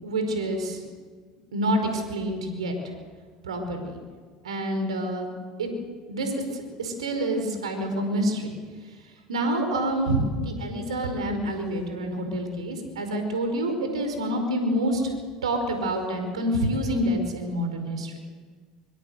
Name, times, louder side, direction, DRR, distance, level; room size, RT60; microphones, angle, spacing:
voice 1, 0.0-0.8 1.5-2.7 3.4-4.0 4.4-5.3 5.6-5.7 6.1-8.6 9.3-15.1 15.4-18.1, right 1 dB, 85° right, 6 dB, 5.0 m, -27 dB
24.5 x 24.5 x 8.1 m, 1.5 s
hypercardioid pair, 75°, 3 cm